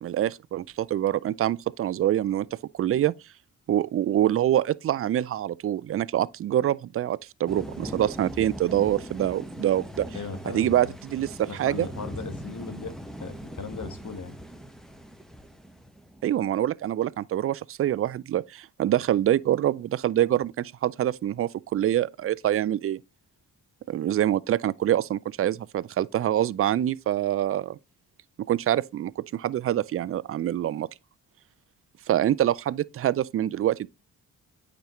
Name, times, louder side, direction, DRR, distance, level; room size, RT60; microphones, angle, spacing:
voice 1, 0.0-2.5 2.7-3.1 3.7-10.1 10.5-11.9 16.2-23.0 23.9-27.8 28.5-30.9 32.1-33.9, right 12 dB, 35° right, 0.4 m, -25 dB
sound 1, 7.5-16.3, equal, ahead, 1.3 m, -40 dB
voice 2, 10.1-10.9 11.5-14.4, left 5 dB, 45° left, 1.5 m, -38 dB
8.9 x 5.1 x 3.1 m
hypercardioid pair, 40°, 42 cm